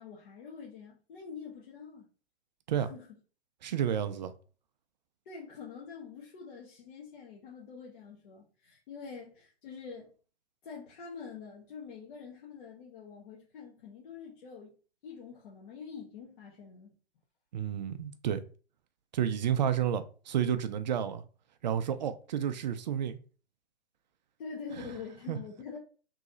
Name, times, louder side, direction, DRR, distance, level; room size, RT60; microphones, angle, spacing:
voice 1, 0.0-2.1 2.8-3.2 5.2-10.1 10.6-14.7 15.0-16.9 24.4-25.8, left 6 dB, 50° left, 1.1 m, -46 dB
voice 2, 3.6-4.3 17.5-18.4 19.1-21.2 21.6-23.2 25.3-25.4, right 9 dB, 45° right, 0.4 m, -30 dB
3.1 x 2.7 x 3.8 m
figure-of-eight pair, 125°, 33 cm